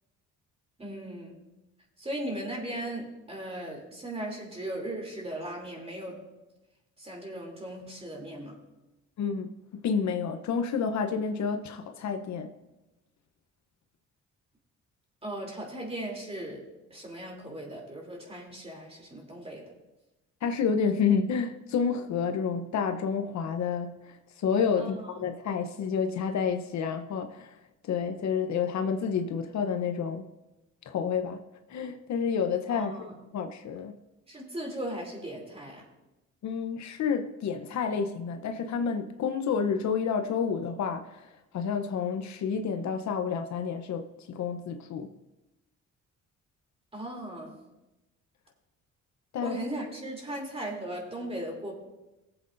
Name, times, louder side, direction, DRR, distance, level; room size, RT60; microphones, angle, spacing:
voice 1, 0.8-1.4 2.0-6.2 7.0-8.6 15.2-16.6 16.9-19.6 24.8-25.0 32.7-33.1 34.3-35.8 46.9-47.6 49.4-51.7, right 1 dB, 20° right, 3.0 m, -37 dB
voice 2, 9.2-9.5 9.8-12.5 20.4-27.5 27.9-30.3 30.9-31.4 31.7-33.0 33.3-33.9 36.4-41.3 41.5-45.1 49.3-49.6, left 6 dB, 65° left, 0.9 m, -29 dB
19.5 x 8.0 x 2.6 m
cardioid pair, 90°, 30 cm